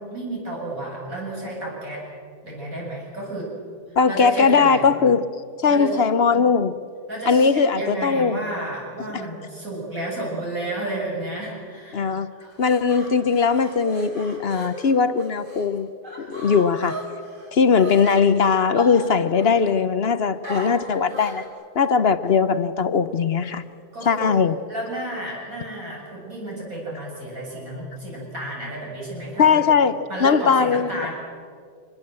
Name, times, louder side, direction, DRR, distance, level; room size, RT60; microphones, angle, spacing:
voice 1, 0.0-2.0 2.4-3.5 4.1-4.9 5.7-5.9 7.1-12.1 12.4-12.5 16.2-16.3 23.9-24.4 24.7-29.6 30.1-31.1, right 1 dB, 60° right, 7.9 m, -31 dB
voice 2, 4.0-5.2 5.6-6.8 7.3-8.4 9.1-9.2 11.9-12.3 12.6-15.9 16.2-17.0 17.5-21.4 21.8-23.6 24.0-24.6 29.4-31.1, left 5 dB, 50° left, 0.8 m, -19 dB
sound 1, 12.4-15.7 16.0-18.2 18.8-19.8 20.4-21.5, equal, 30° right, 4.9 m, -36 dB
25.0 x 20.5 x 7.6 m
omnidirectional pair, 1.6 m